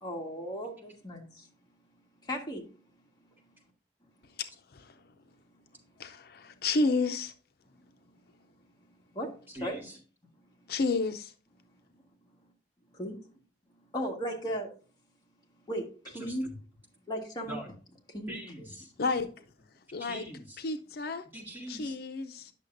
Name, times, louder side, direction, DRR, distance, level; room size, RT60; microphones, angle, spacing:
voice 1, 0.0-1.5 2.2-2.8 8.8-9.3 9.6-9.8 10.6-10.7 12.9-13.2 13.9-14.7 15.7-16.5 17.1-17.6 18.1-18.4, equal, 25° left, 1.6 m, -36 dB
voice 2, 4.4-4.9 6.0-7.3 10.7-11.3 19.0-19.3 19.9-20.2 20.6-21.2 21.7-22.5, left 3 dB, 60° left, 0.5 m, -31 dB
voice 3, 9.5-10.0 16.1-16.5 17.5-17.7 18.3-18.9 20.0-20.6 21.3-22.0, equal, 10° right, 2.0 m, -43 dB
9.9 x 6.4 x 2.6 m
head